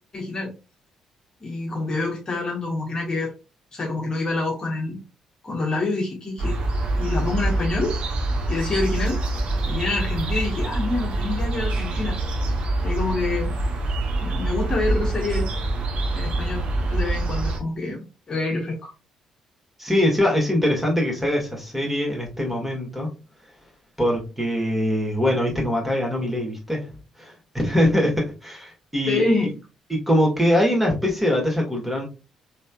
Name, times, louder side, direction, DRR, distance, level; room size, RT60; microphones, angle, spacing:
voice 1, 0.1-0.5 1.4-3.3 3.7-5.0 5.4-6.6 7.0-7.9 8.5-9.2 9.6-12.2 12.8-13.5 14.2-15.5 16.1-16.6 16.9-18.0 18.3-18.9 29.1-29.6, left 3 dB, 35° left, 0 dB, 1.3 m, -26 dB
sound 1, 6.4-17.6, right 2 dB, 55° right, 0.9 m, -25 dB
voice 2, 19.8-23.1 24.0-26.9 27.2-29.2 29.9-32.0, left 1 dB, 10° right, -1 dB, 2.0 m, -22 dB
4.1 x 3.4 x 2.3 m, 0.30 s
hypercardioid pair, 45°, 2 cm